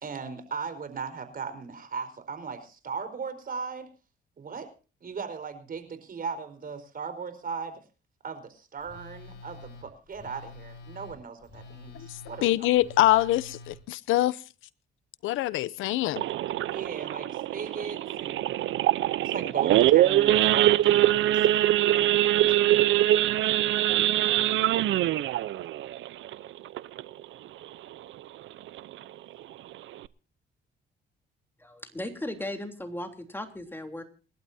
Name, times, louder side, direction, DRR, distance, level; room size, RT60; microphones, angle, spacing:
voice 1, 0.0-3.9 4.4-4.7 5.0-7.8 8.2-12.7 16.7-18.5 19.2-23.0, right 5 dB, 45° right, 10 dB, 4.6 m, -38 dB
Telephone, 8.8-13.8, left 3 dB, 60° left, 6.9 m, -47 dB
voice 2, 11.9-14.4 15.2-16.2, left 15 dB, 90° left, 19 dB, 0.7 m, -25 dB
Idling / Accelerating revving vroom / Sawing, 16.2-27.2 27.6-27.8 28.1-28.2 28.7-28.9 29.4-29.5 29.7-30.1, right 13 dB, 80° right, 0.7 m, -23 dB
voice 3, 31.6-34.0, left 1 dB, 10° left, 5 dB, 3.4 m, -36 dB
28.5 x 12.0 x 2.8 m, 0.34 s
cardioid pair, 90°, 20 cm